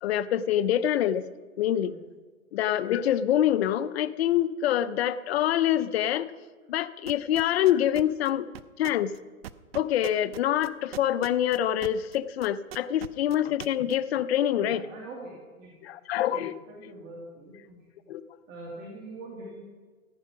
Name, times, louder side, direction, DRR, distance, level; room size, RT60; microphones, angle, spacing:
voice 1, 0.0-1.3 1.6-1.9 2.5-6.3 6.7-8.5 8.8-9.1 9.7-14.8 15.8-16.6 18.1-18.2, left 11 dB, 45° left, 15 dB, 0.6 m, -25 dB
sound 1, 7.1-12.2 12.4-13.9, right 12 dB, 45° right, 0.5 m, -40 dB
voice 2, 14.6-15.7 16.4-17.9 18.5-19.6, right 2 dB, 25° right, -2 dB, 2.3 m, -43 dB
14.5 x 9.2 x 5.9 m, 1.4 s
hypercardioid pair, 145°, 42 cm